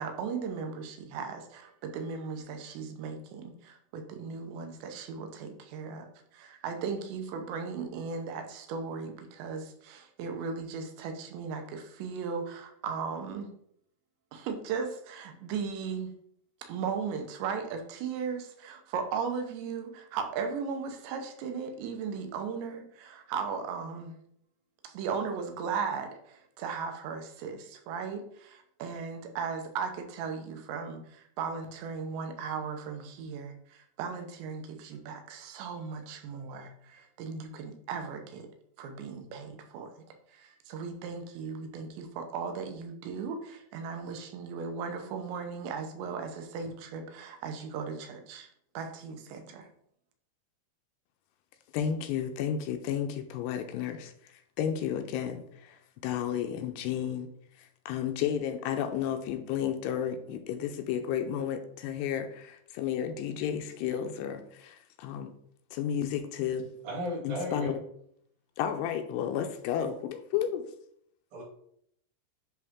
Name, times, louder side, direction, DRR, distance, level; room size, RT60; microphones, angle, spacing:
voice 1, 0.0-13.5 14.3-16.1 16.6-24.2 24.8-38.5 38.8-48.5 48.7-49.7, right 5 dB, 85° right, 3.1 m, -37 dB
voice 2, 51.7-57.3 57.6-65.3 65.7-66.7 67.2-67.8 68.6-70.6, left 9 dB, 80° left, 2.6 m, -32 dB
voice 3, 66.8-67.7 71.3-71.4, equal, 55° right, 4.1 m, -34 dB
10.5 x 3.6 x 3.6 m
omnidirectional pair, 5.0 m